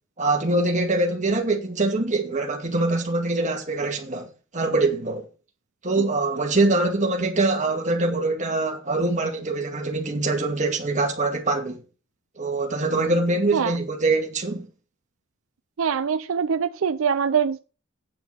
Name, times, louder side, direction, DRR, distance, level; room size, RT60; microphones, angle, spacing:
voice 1, 0.2-4.3 4.5-5.3 5.8-11.8 12.4-14.7, right 2 dB, 35° right, 2.1 m, -23 dB
voice 2, 15.8-17.6, right 6 dB, 80° right, 0.5 m, -23 dB
9.2 x 6.0 x 5.6 m
head